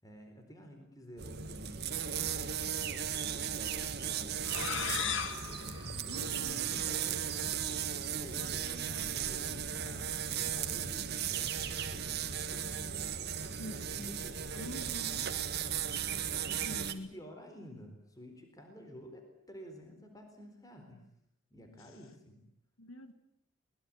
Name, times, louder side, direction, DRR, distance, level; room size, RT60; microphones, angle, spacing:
voice 1, 0.0-2.2 3.1-14.6 16.5-21.0 21.5-22.5, equal, 15° left, 5 dB, 4.2 m, -52 dB
sound 1, 1.2-16.9, right 8 dB, 50° right, 1.8 m, -36 dB
sound 2, 4.4-7.0, left 7 dB, 60° left, 2.1 m, -38 dB
voice 2, 6.1-6.8 8.3-9.2 13.6-14.2 14.5-15.4 16.7-17.1 22.8-23.1, equal, 75° left, 10 dB, 2.1 m, -46 dB
23.0 x 21.5 x 8.8 m, 0.77 s
head